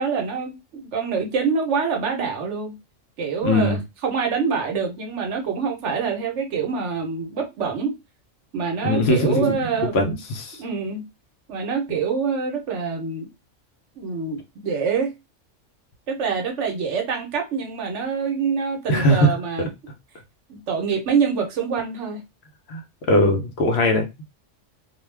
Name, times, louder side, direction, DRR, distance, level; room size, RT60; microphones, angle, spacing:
voice 1, 0.0-2.7 3.2-7.9 8.5-10.2 10.6-11.0 11.5-13.3 13.9-15.1 16.1-19.7 20.5-22.2, right 5 dB, 70° right, 1.0 m, -25 dB
voice 2, 3.4-3.8 8.8-9.5 9.9-10.6 18.9-19.3 22.7-22.8 23.1-24.3, left 1 dB, 65° left, 0.8 m, -20 dB
2.4 x 2.2 x 3.2 m
omnidirectional pair, 1.3 m